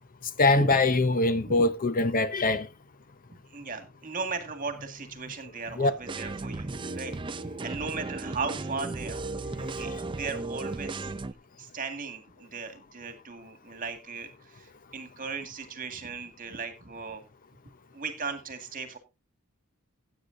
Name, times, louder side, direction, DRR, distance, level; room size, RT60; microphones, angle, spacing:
voice 1, 0.4-2.7 5.8-5.9, left 2 dB, 40° left, 0.6 m, -23 dB
voice 2, 3.5-7.2 7.6-11.1 11.6-17.2 17.9-19.0, right 4 dB, 40° right, 1.9 m, -37 dB
sound 1, 6.1-11.3, right 3 dB, 20° right, 0.5 m, -35 dB
16.0 x 8.4 x 2.6 m
head